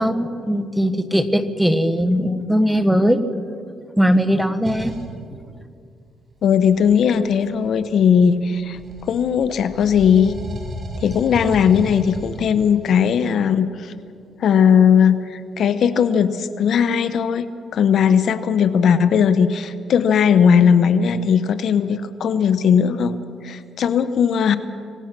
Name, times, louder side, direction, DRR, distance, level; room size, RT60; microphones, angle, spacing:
voice 1, 0.0-3.2 4.0-4.9, equal, ahead, 9 dB, 1.4 m, -19 dB
sound 1, 4.6-5.1 6.4-8.3 8.7-12.9, right 1 dB, 35° right, 6.1 m, -34 dB
voice 2, 6.4-8.8 9.1-10.3 11.0-13.9 14.4-23.2 23.4-24.6, left 7 dB, 65° left, 12 dB, 1.0 m, -17 dB
26.5 x 18.5 x 6.1 m, 2.4 s
cardioid pair, 90°, 0 cm